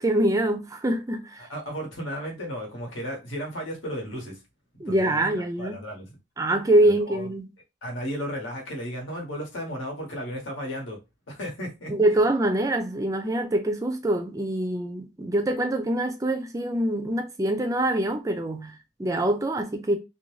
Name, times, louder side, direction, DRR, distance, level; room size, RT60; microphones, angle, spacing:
voice 1, 0.0-1.5 4.8-5.8 6.4-7.4 11.9-20.0, right 1 dB, 15° right, 0.3 m, -24 dB
voice 2, 1.4-4.4 4.9-6.1 6.8-7.3 7.8-11.0 11.3-11.9, equal, 85° left, 1.1 m, -34 dB
2.5 x 2.2 x 3.0 m
head